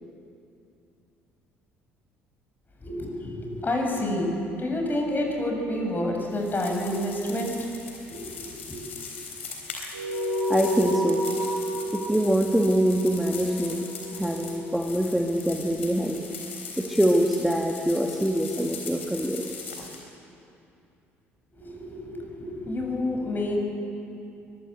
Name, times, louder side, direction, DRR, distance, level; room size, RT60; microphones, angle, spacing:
voice 1, 2.8-4.3 4.6-7.5 8.1-8.8 21.6-23.6, left 1 dB, 30° left, 2 dB, 7.0 m, -29 dB
sound 1, 6.3-20.0, left 5 dB, 80° left, 3.6 m, -40 dB
sound 2, 9.9-14.7, equal, 85° right, 5.9 m, -30 dB
voice 2, 10.5-11.2 11.9-13.9 14.1-16.2 16.8-19.4, equal, ahead, 1 dB, 1.8 m, -24 dB
23.0 x 21.0 x 8.3 m, 2.6 s
figure-of-eight pair, 50°, 7 cm